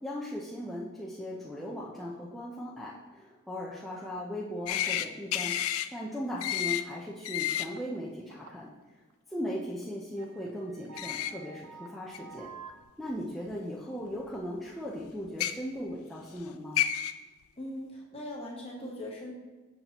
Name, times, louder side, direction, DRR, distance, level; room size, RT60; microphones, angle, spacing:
voice 1, 0.0-8.7 9.3-12.5 13.0-16.8, equal, ahead, -7 dB, 0.5 m, -38 dB
sound 1, 4.7-5.1 5.3-5.9 6.4-6.8 7.2-7.7 11.0-11.3 12.1-12.2 13.5-13.6 15.3-15.5 16.4-16.5 16.8-17.1, left 11 dB, 80° left, 0.3 m, -29 dB
sound 2, 7.8-8.0 8.3-8.7 9.1-9.2 9.8-9.9 10.2-12.8, right 4 dB, 80° right, 0.6 m, -49 dB
voice 2, 17.6-19.3, left 1 dB, 25° left, -3 dB, 1.1 m, -40 dB
6.8 x 5.7 x 2.9 m, 1.3 s
head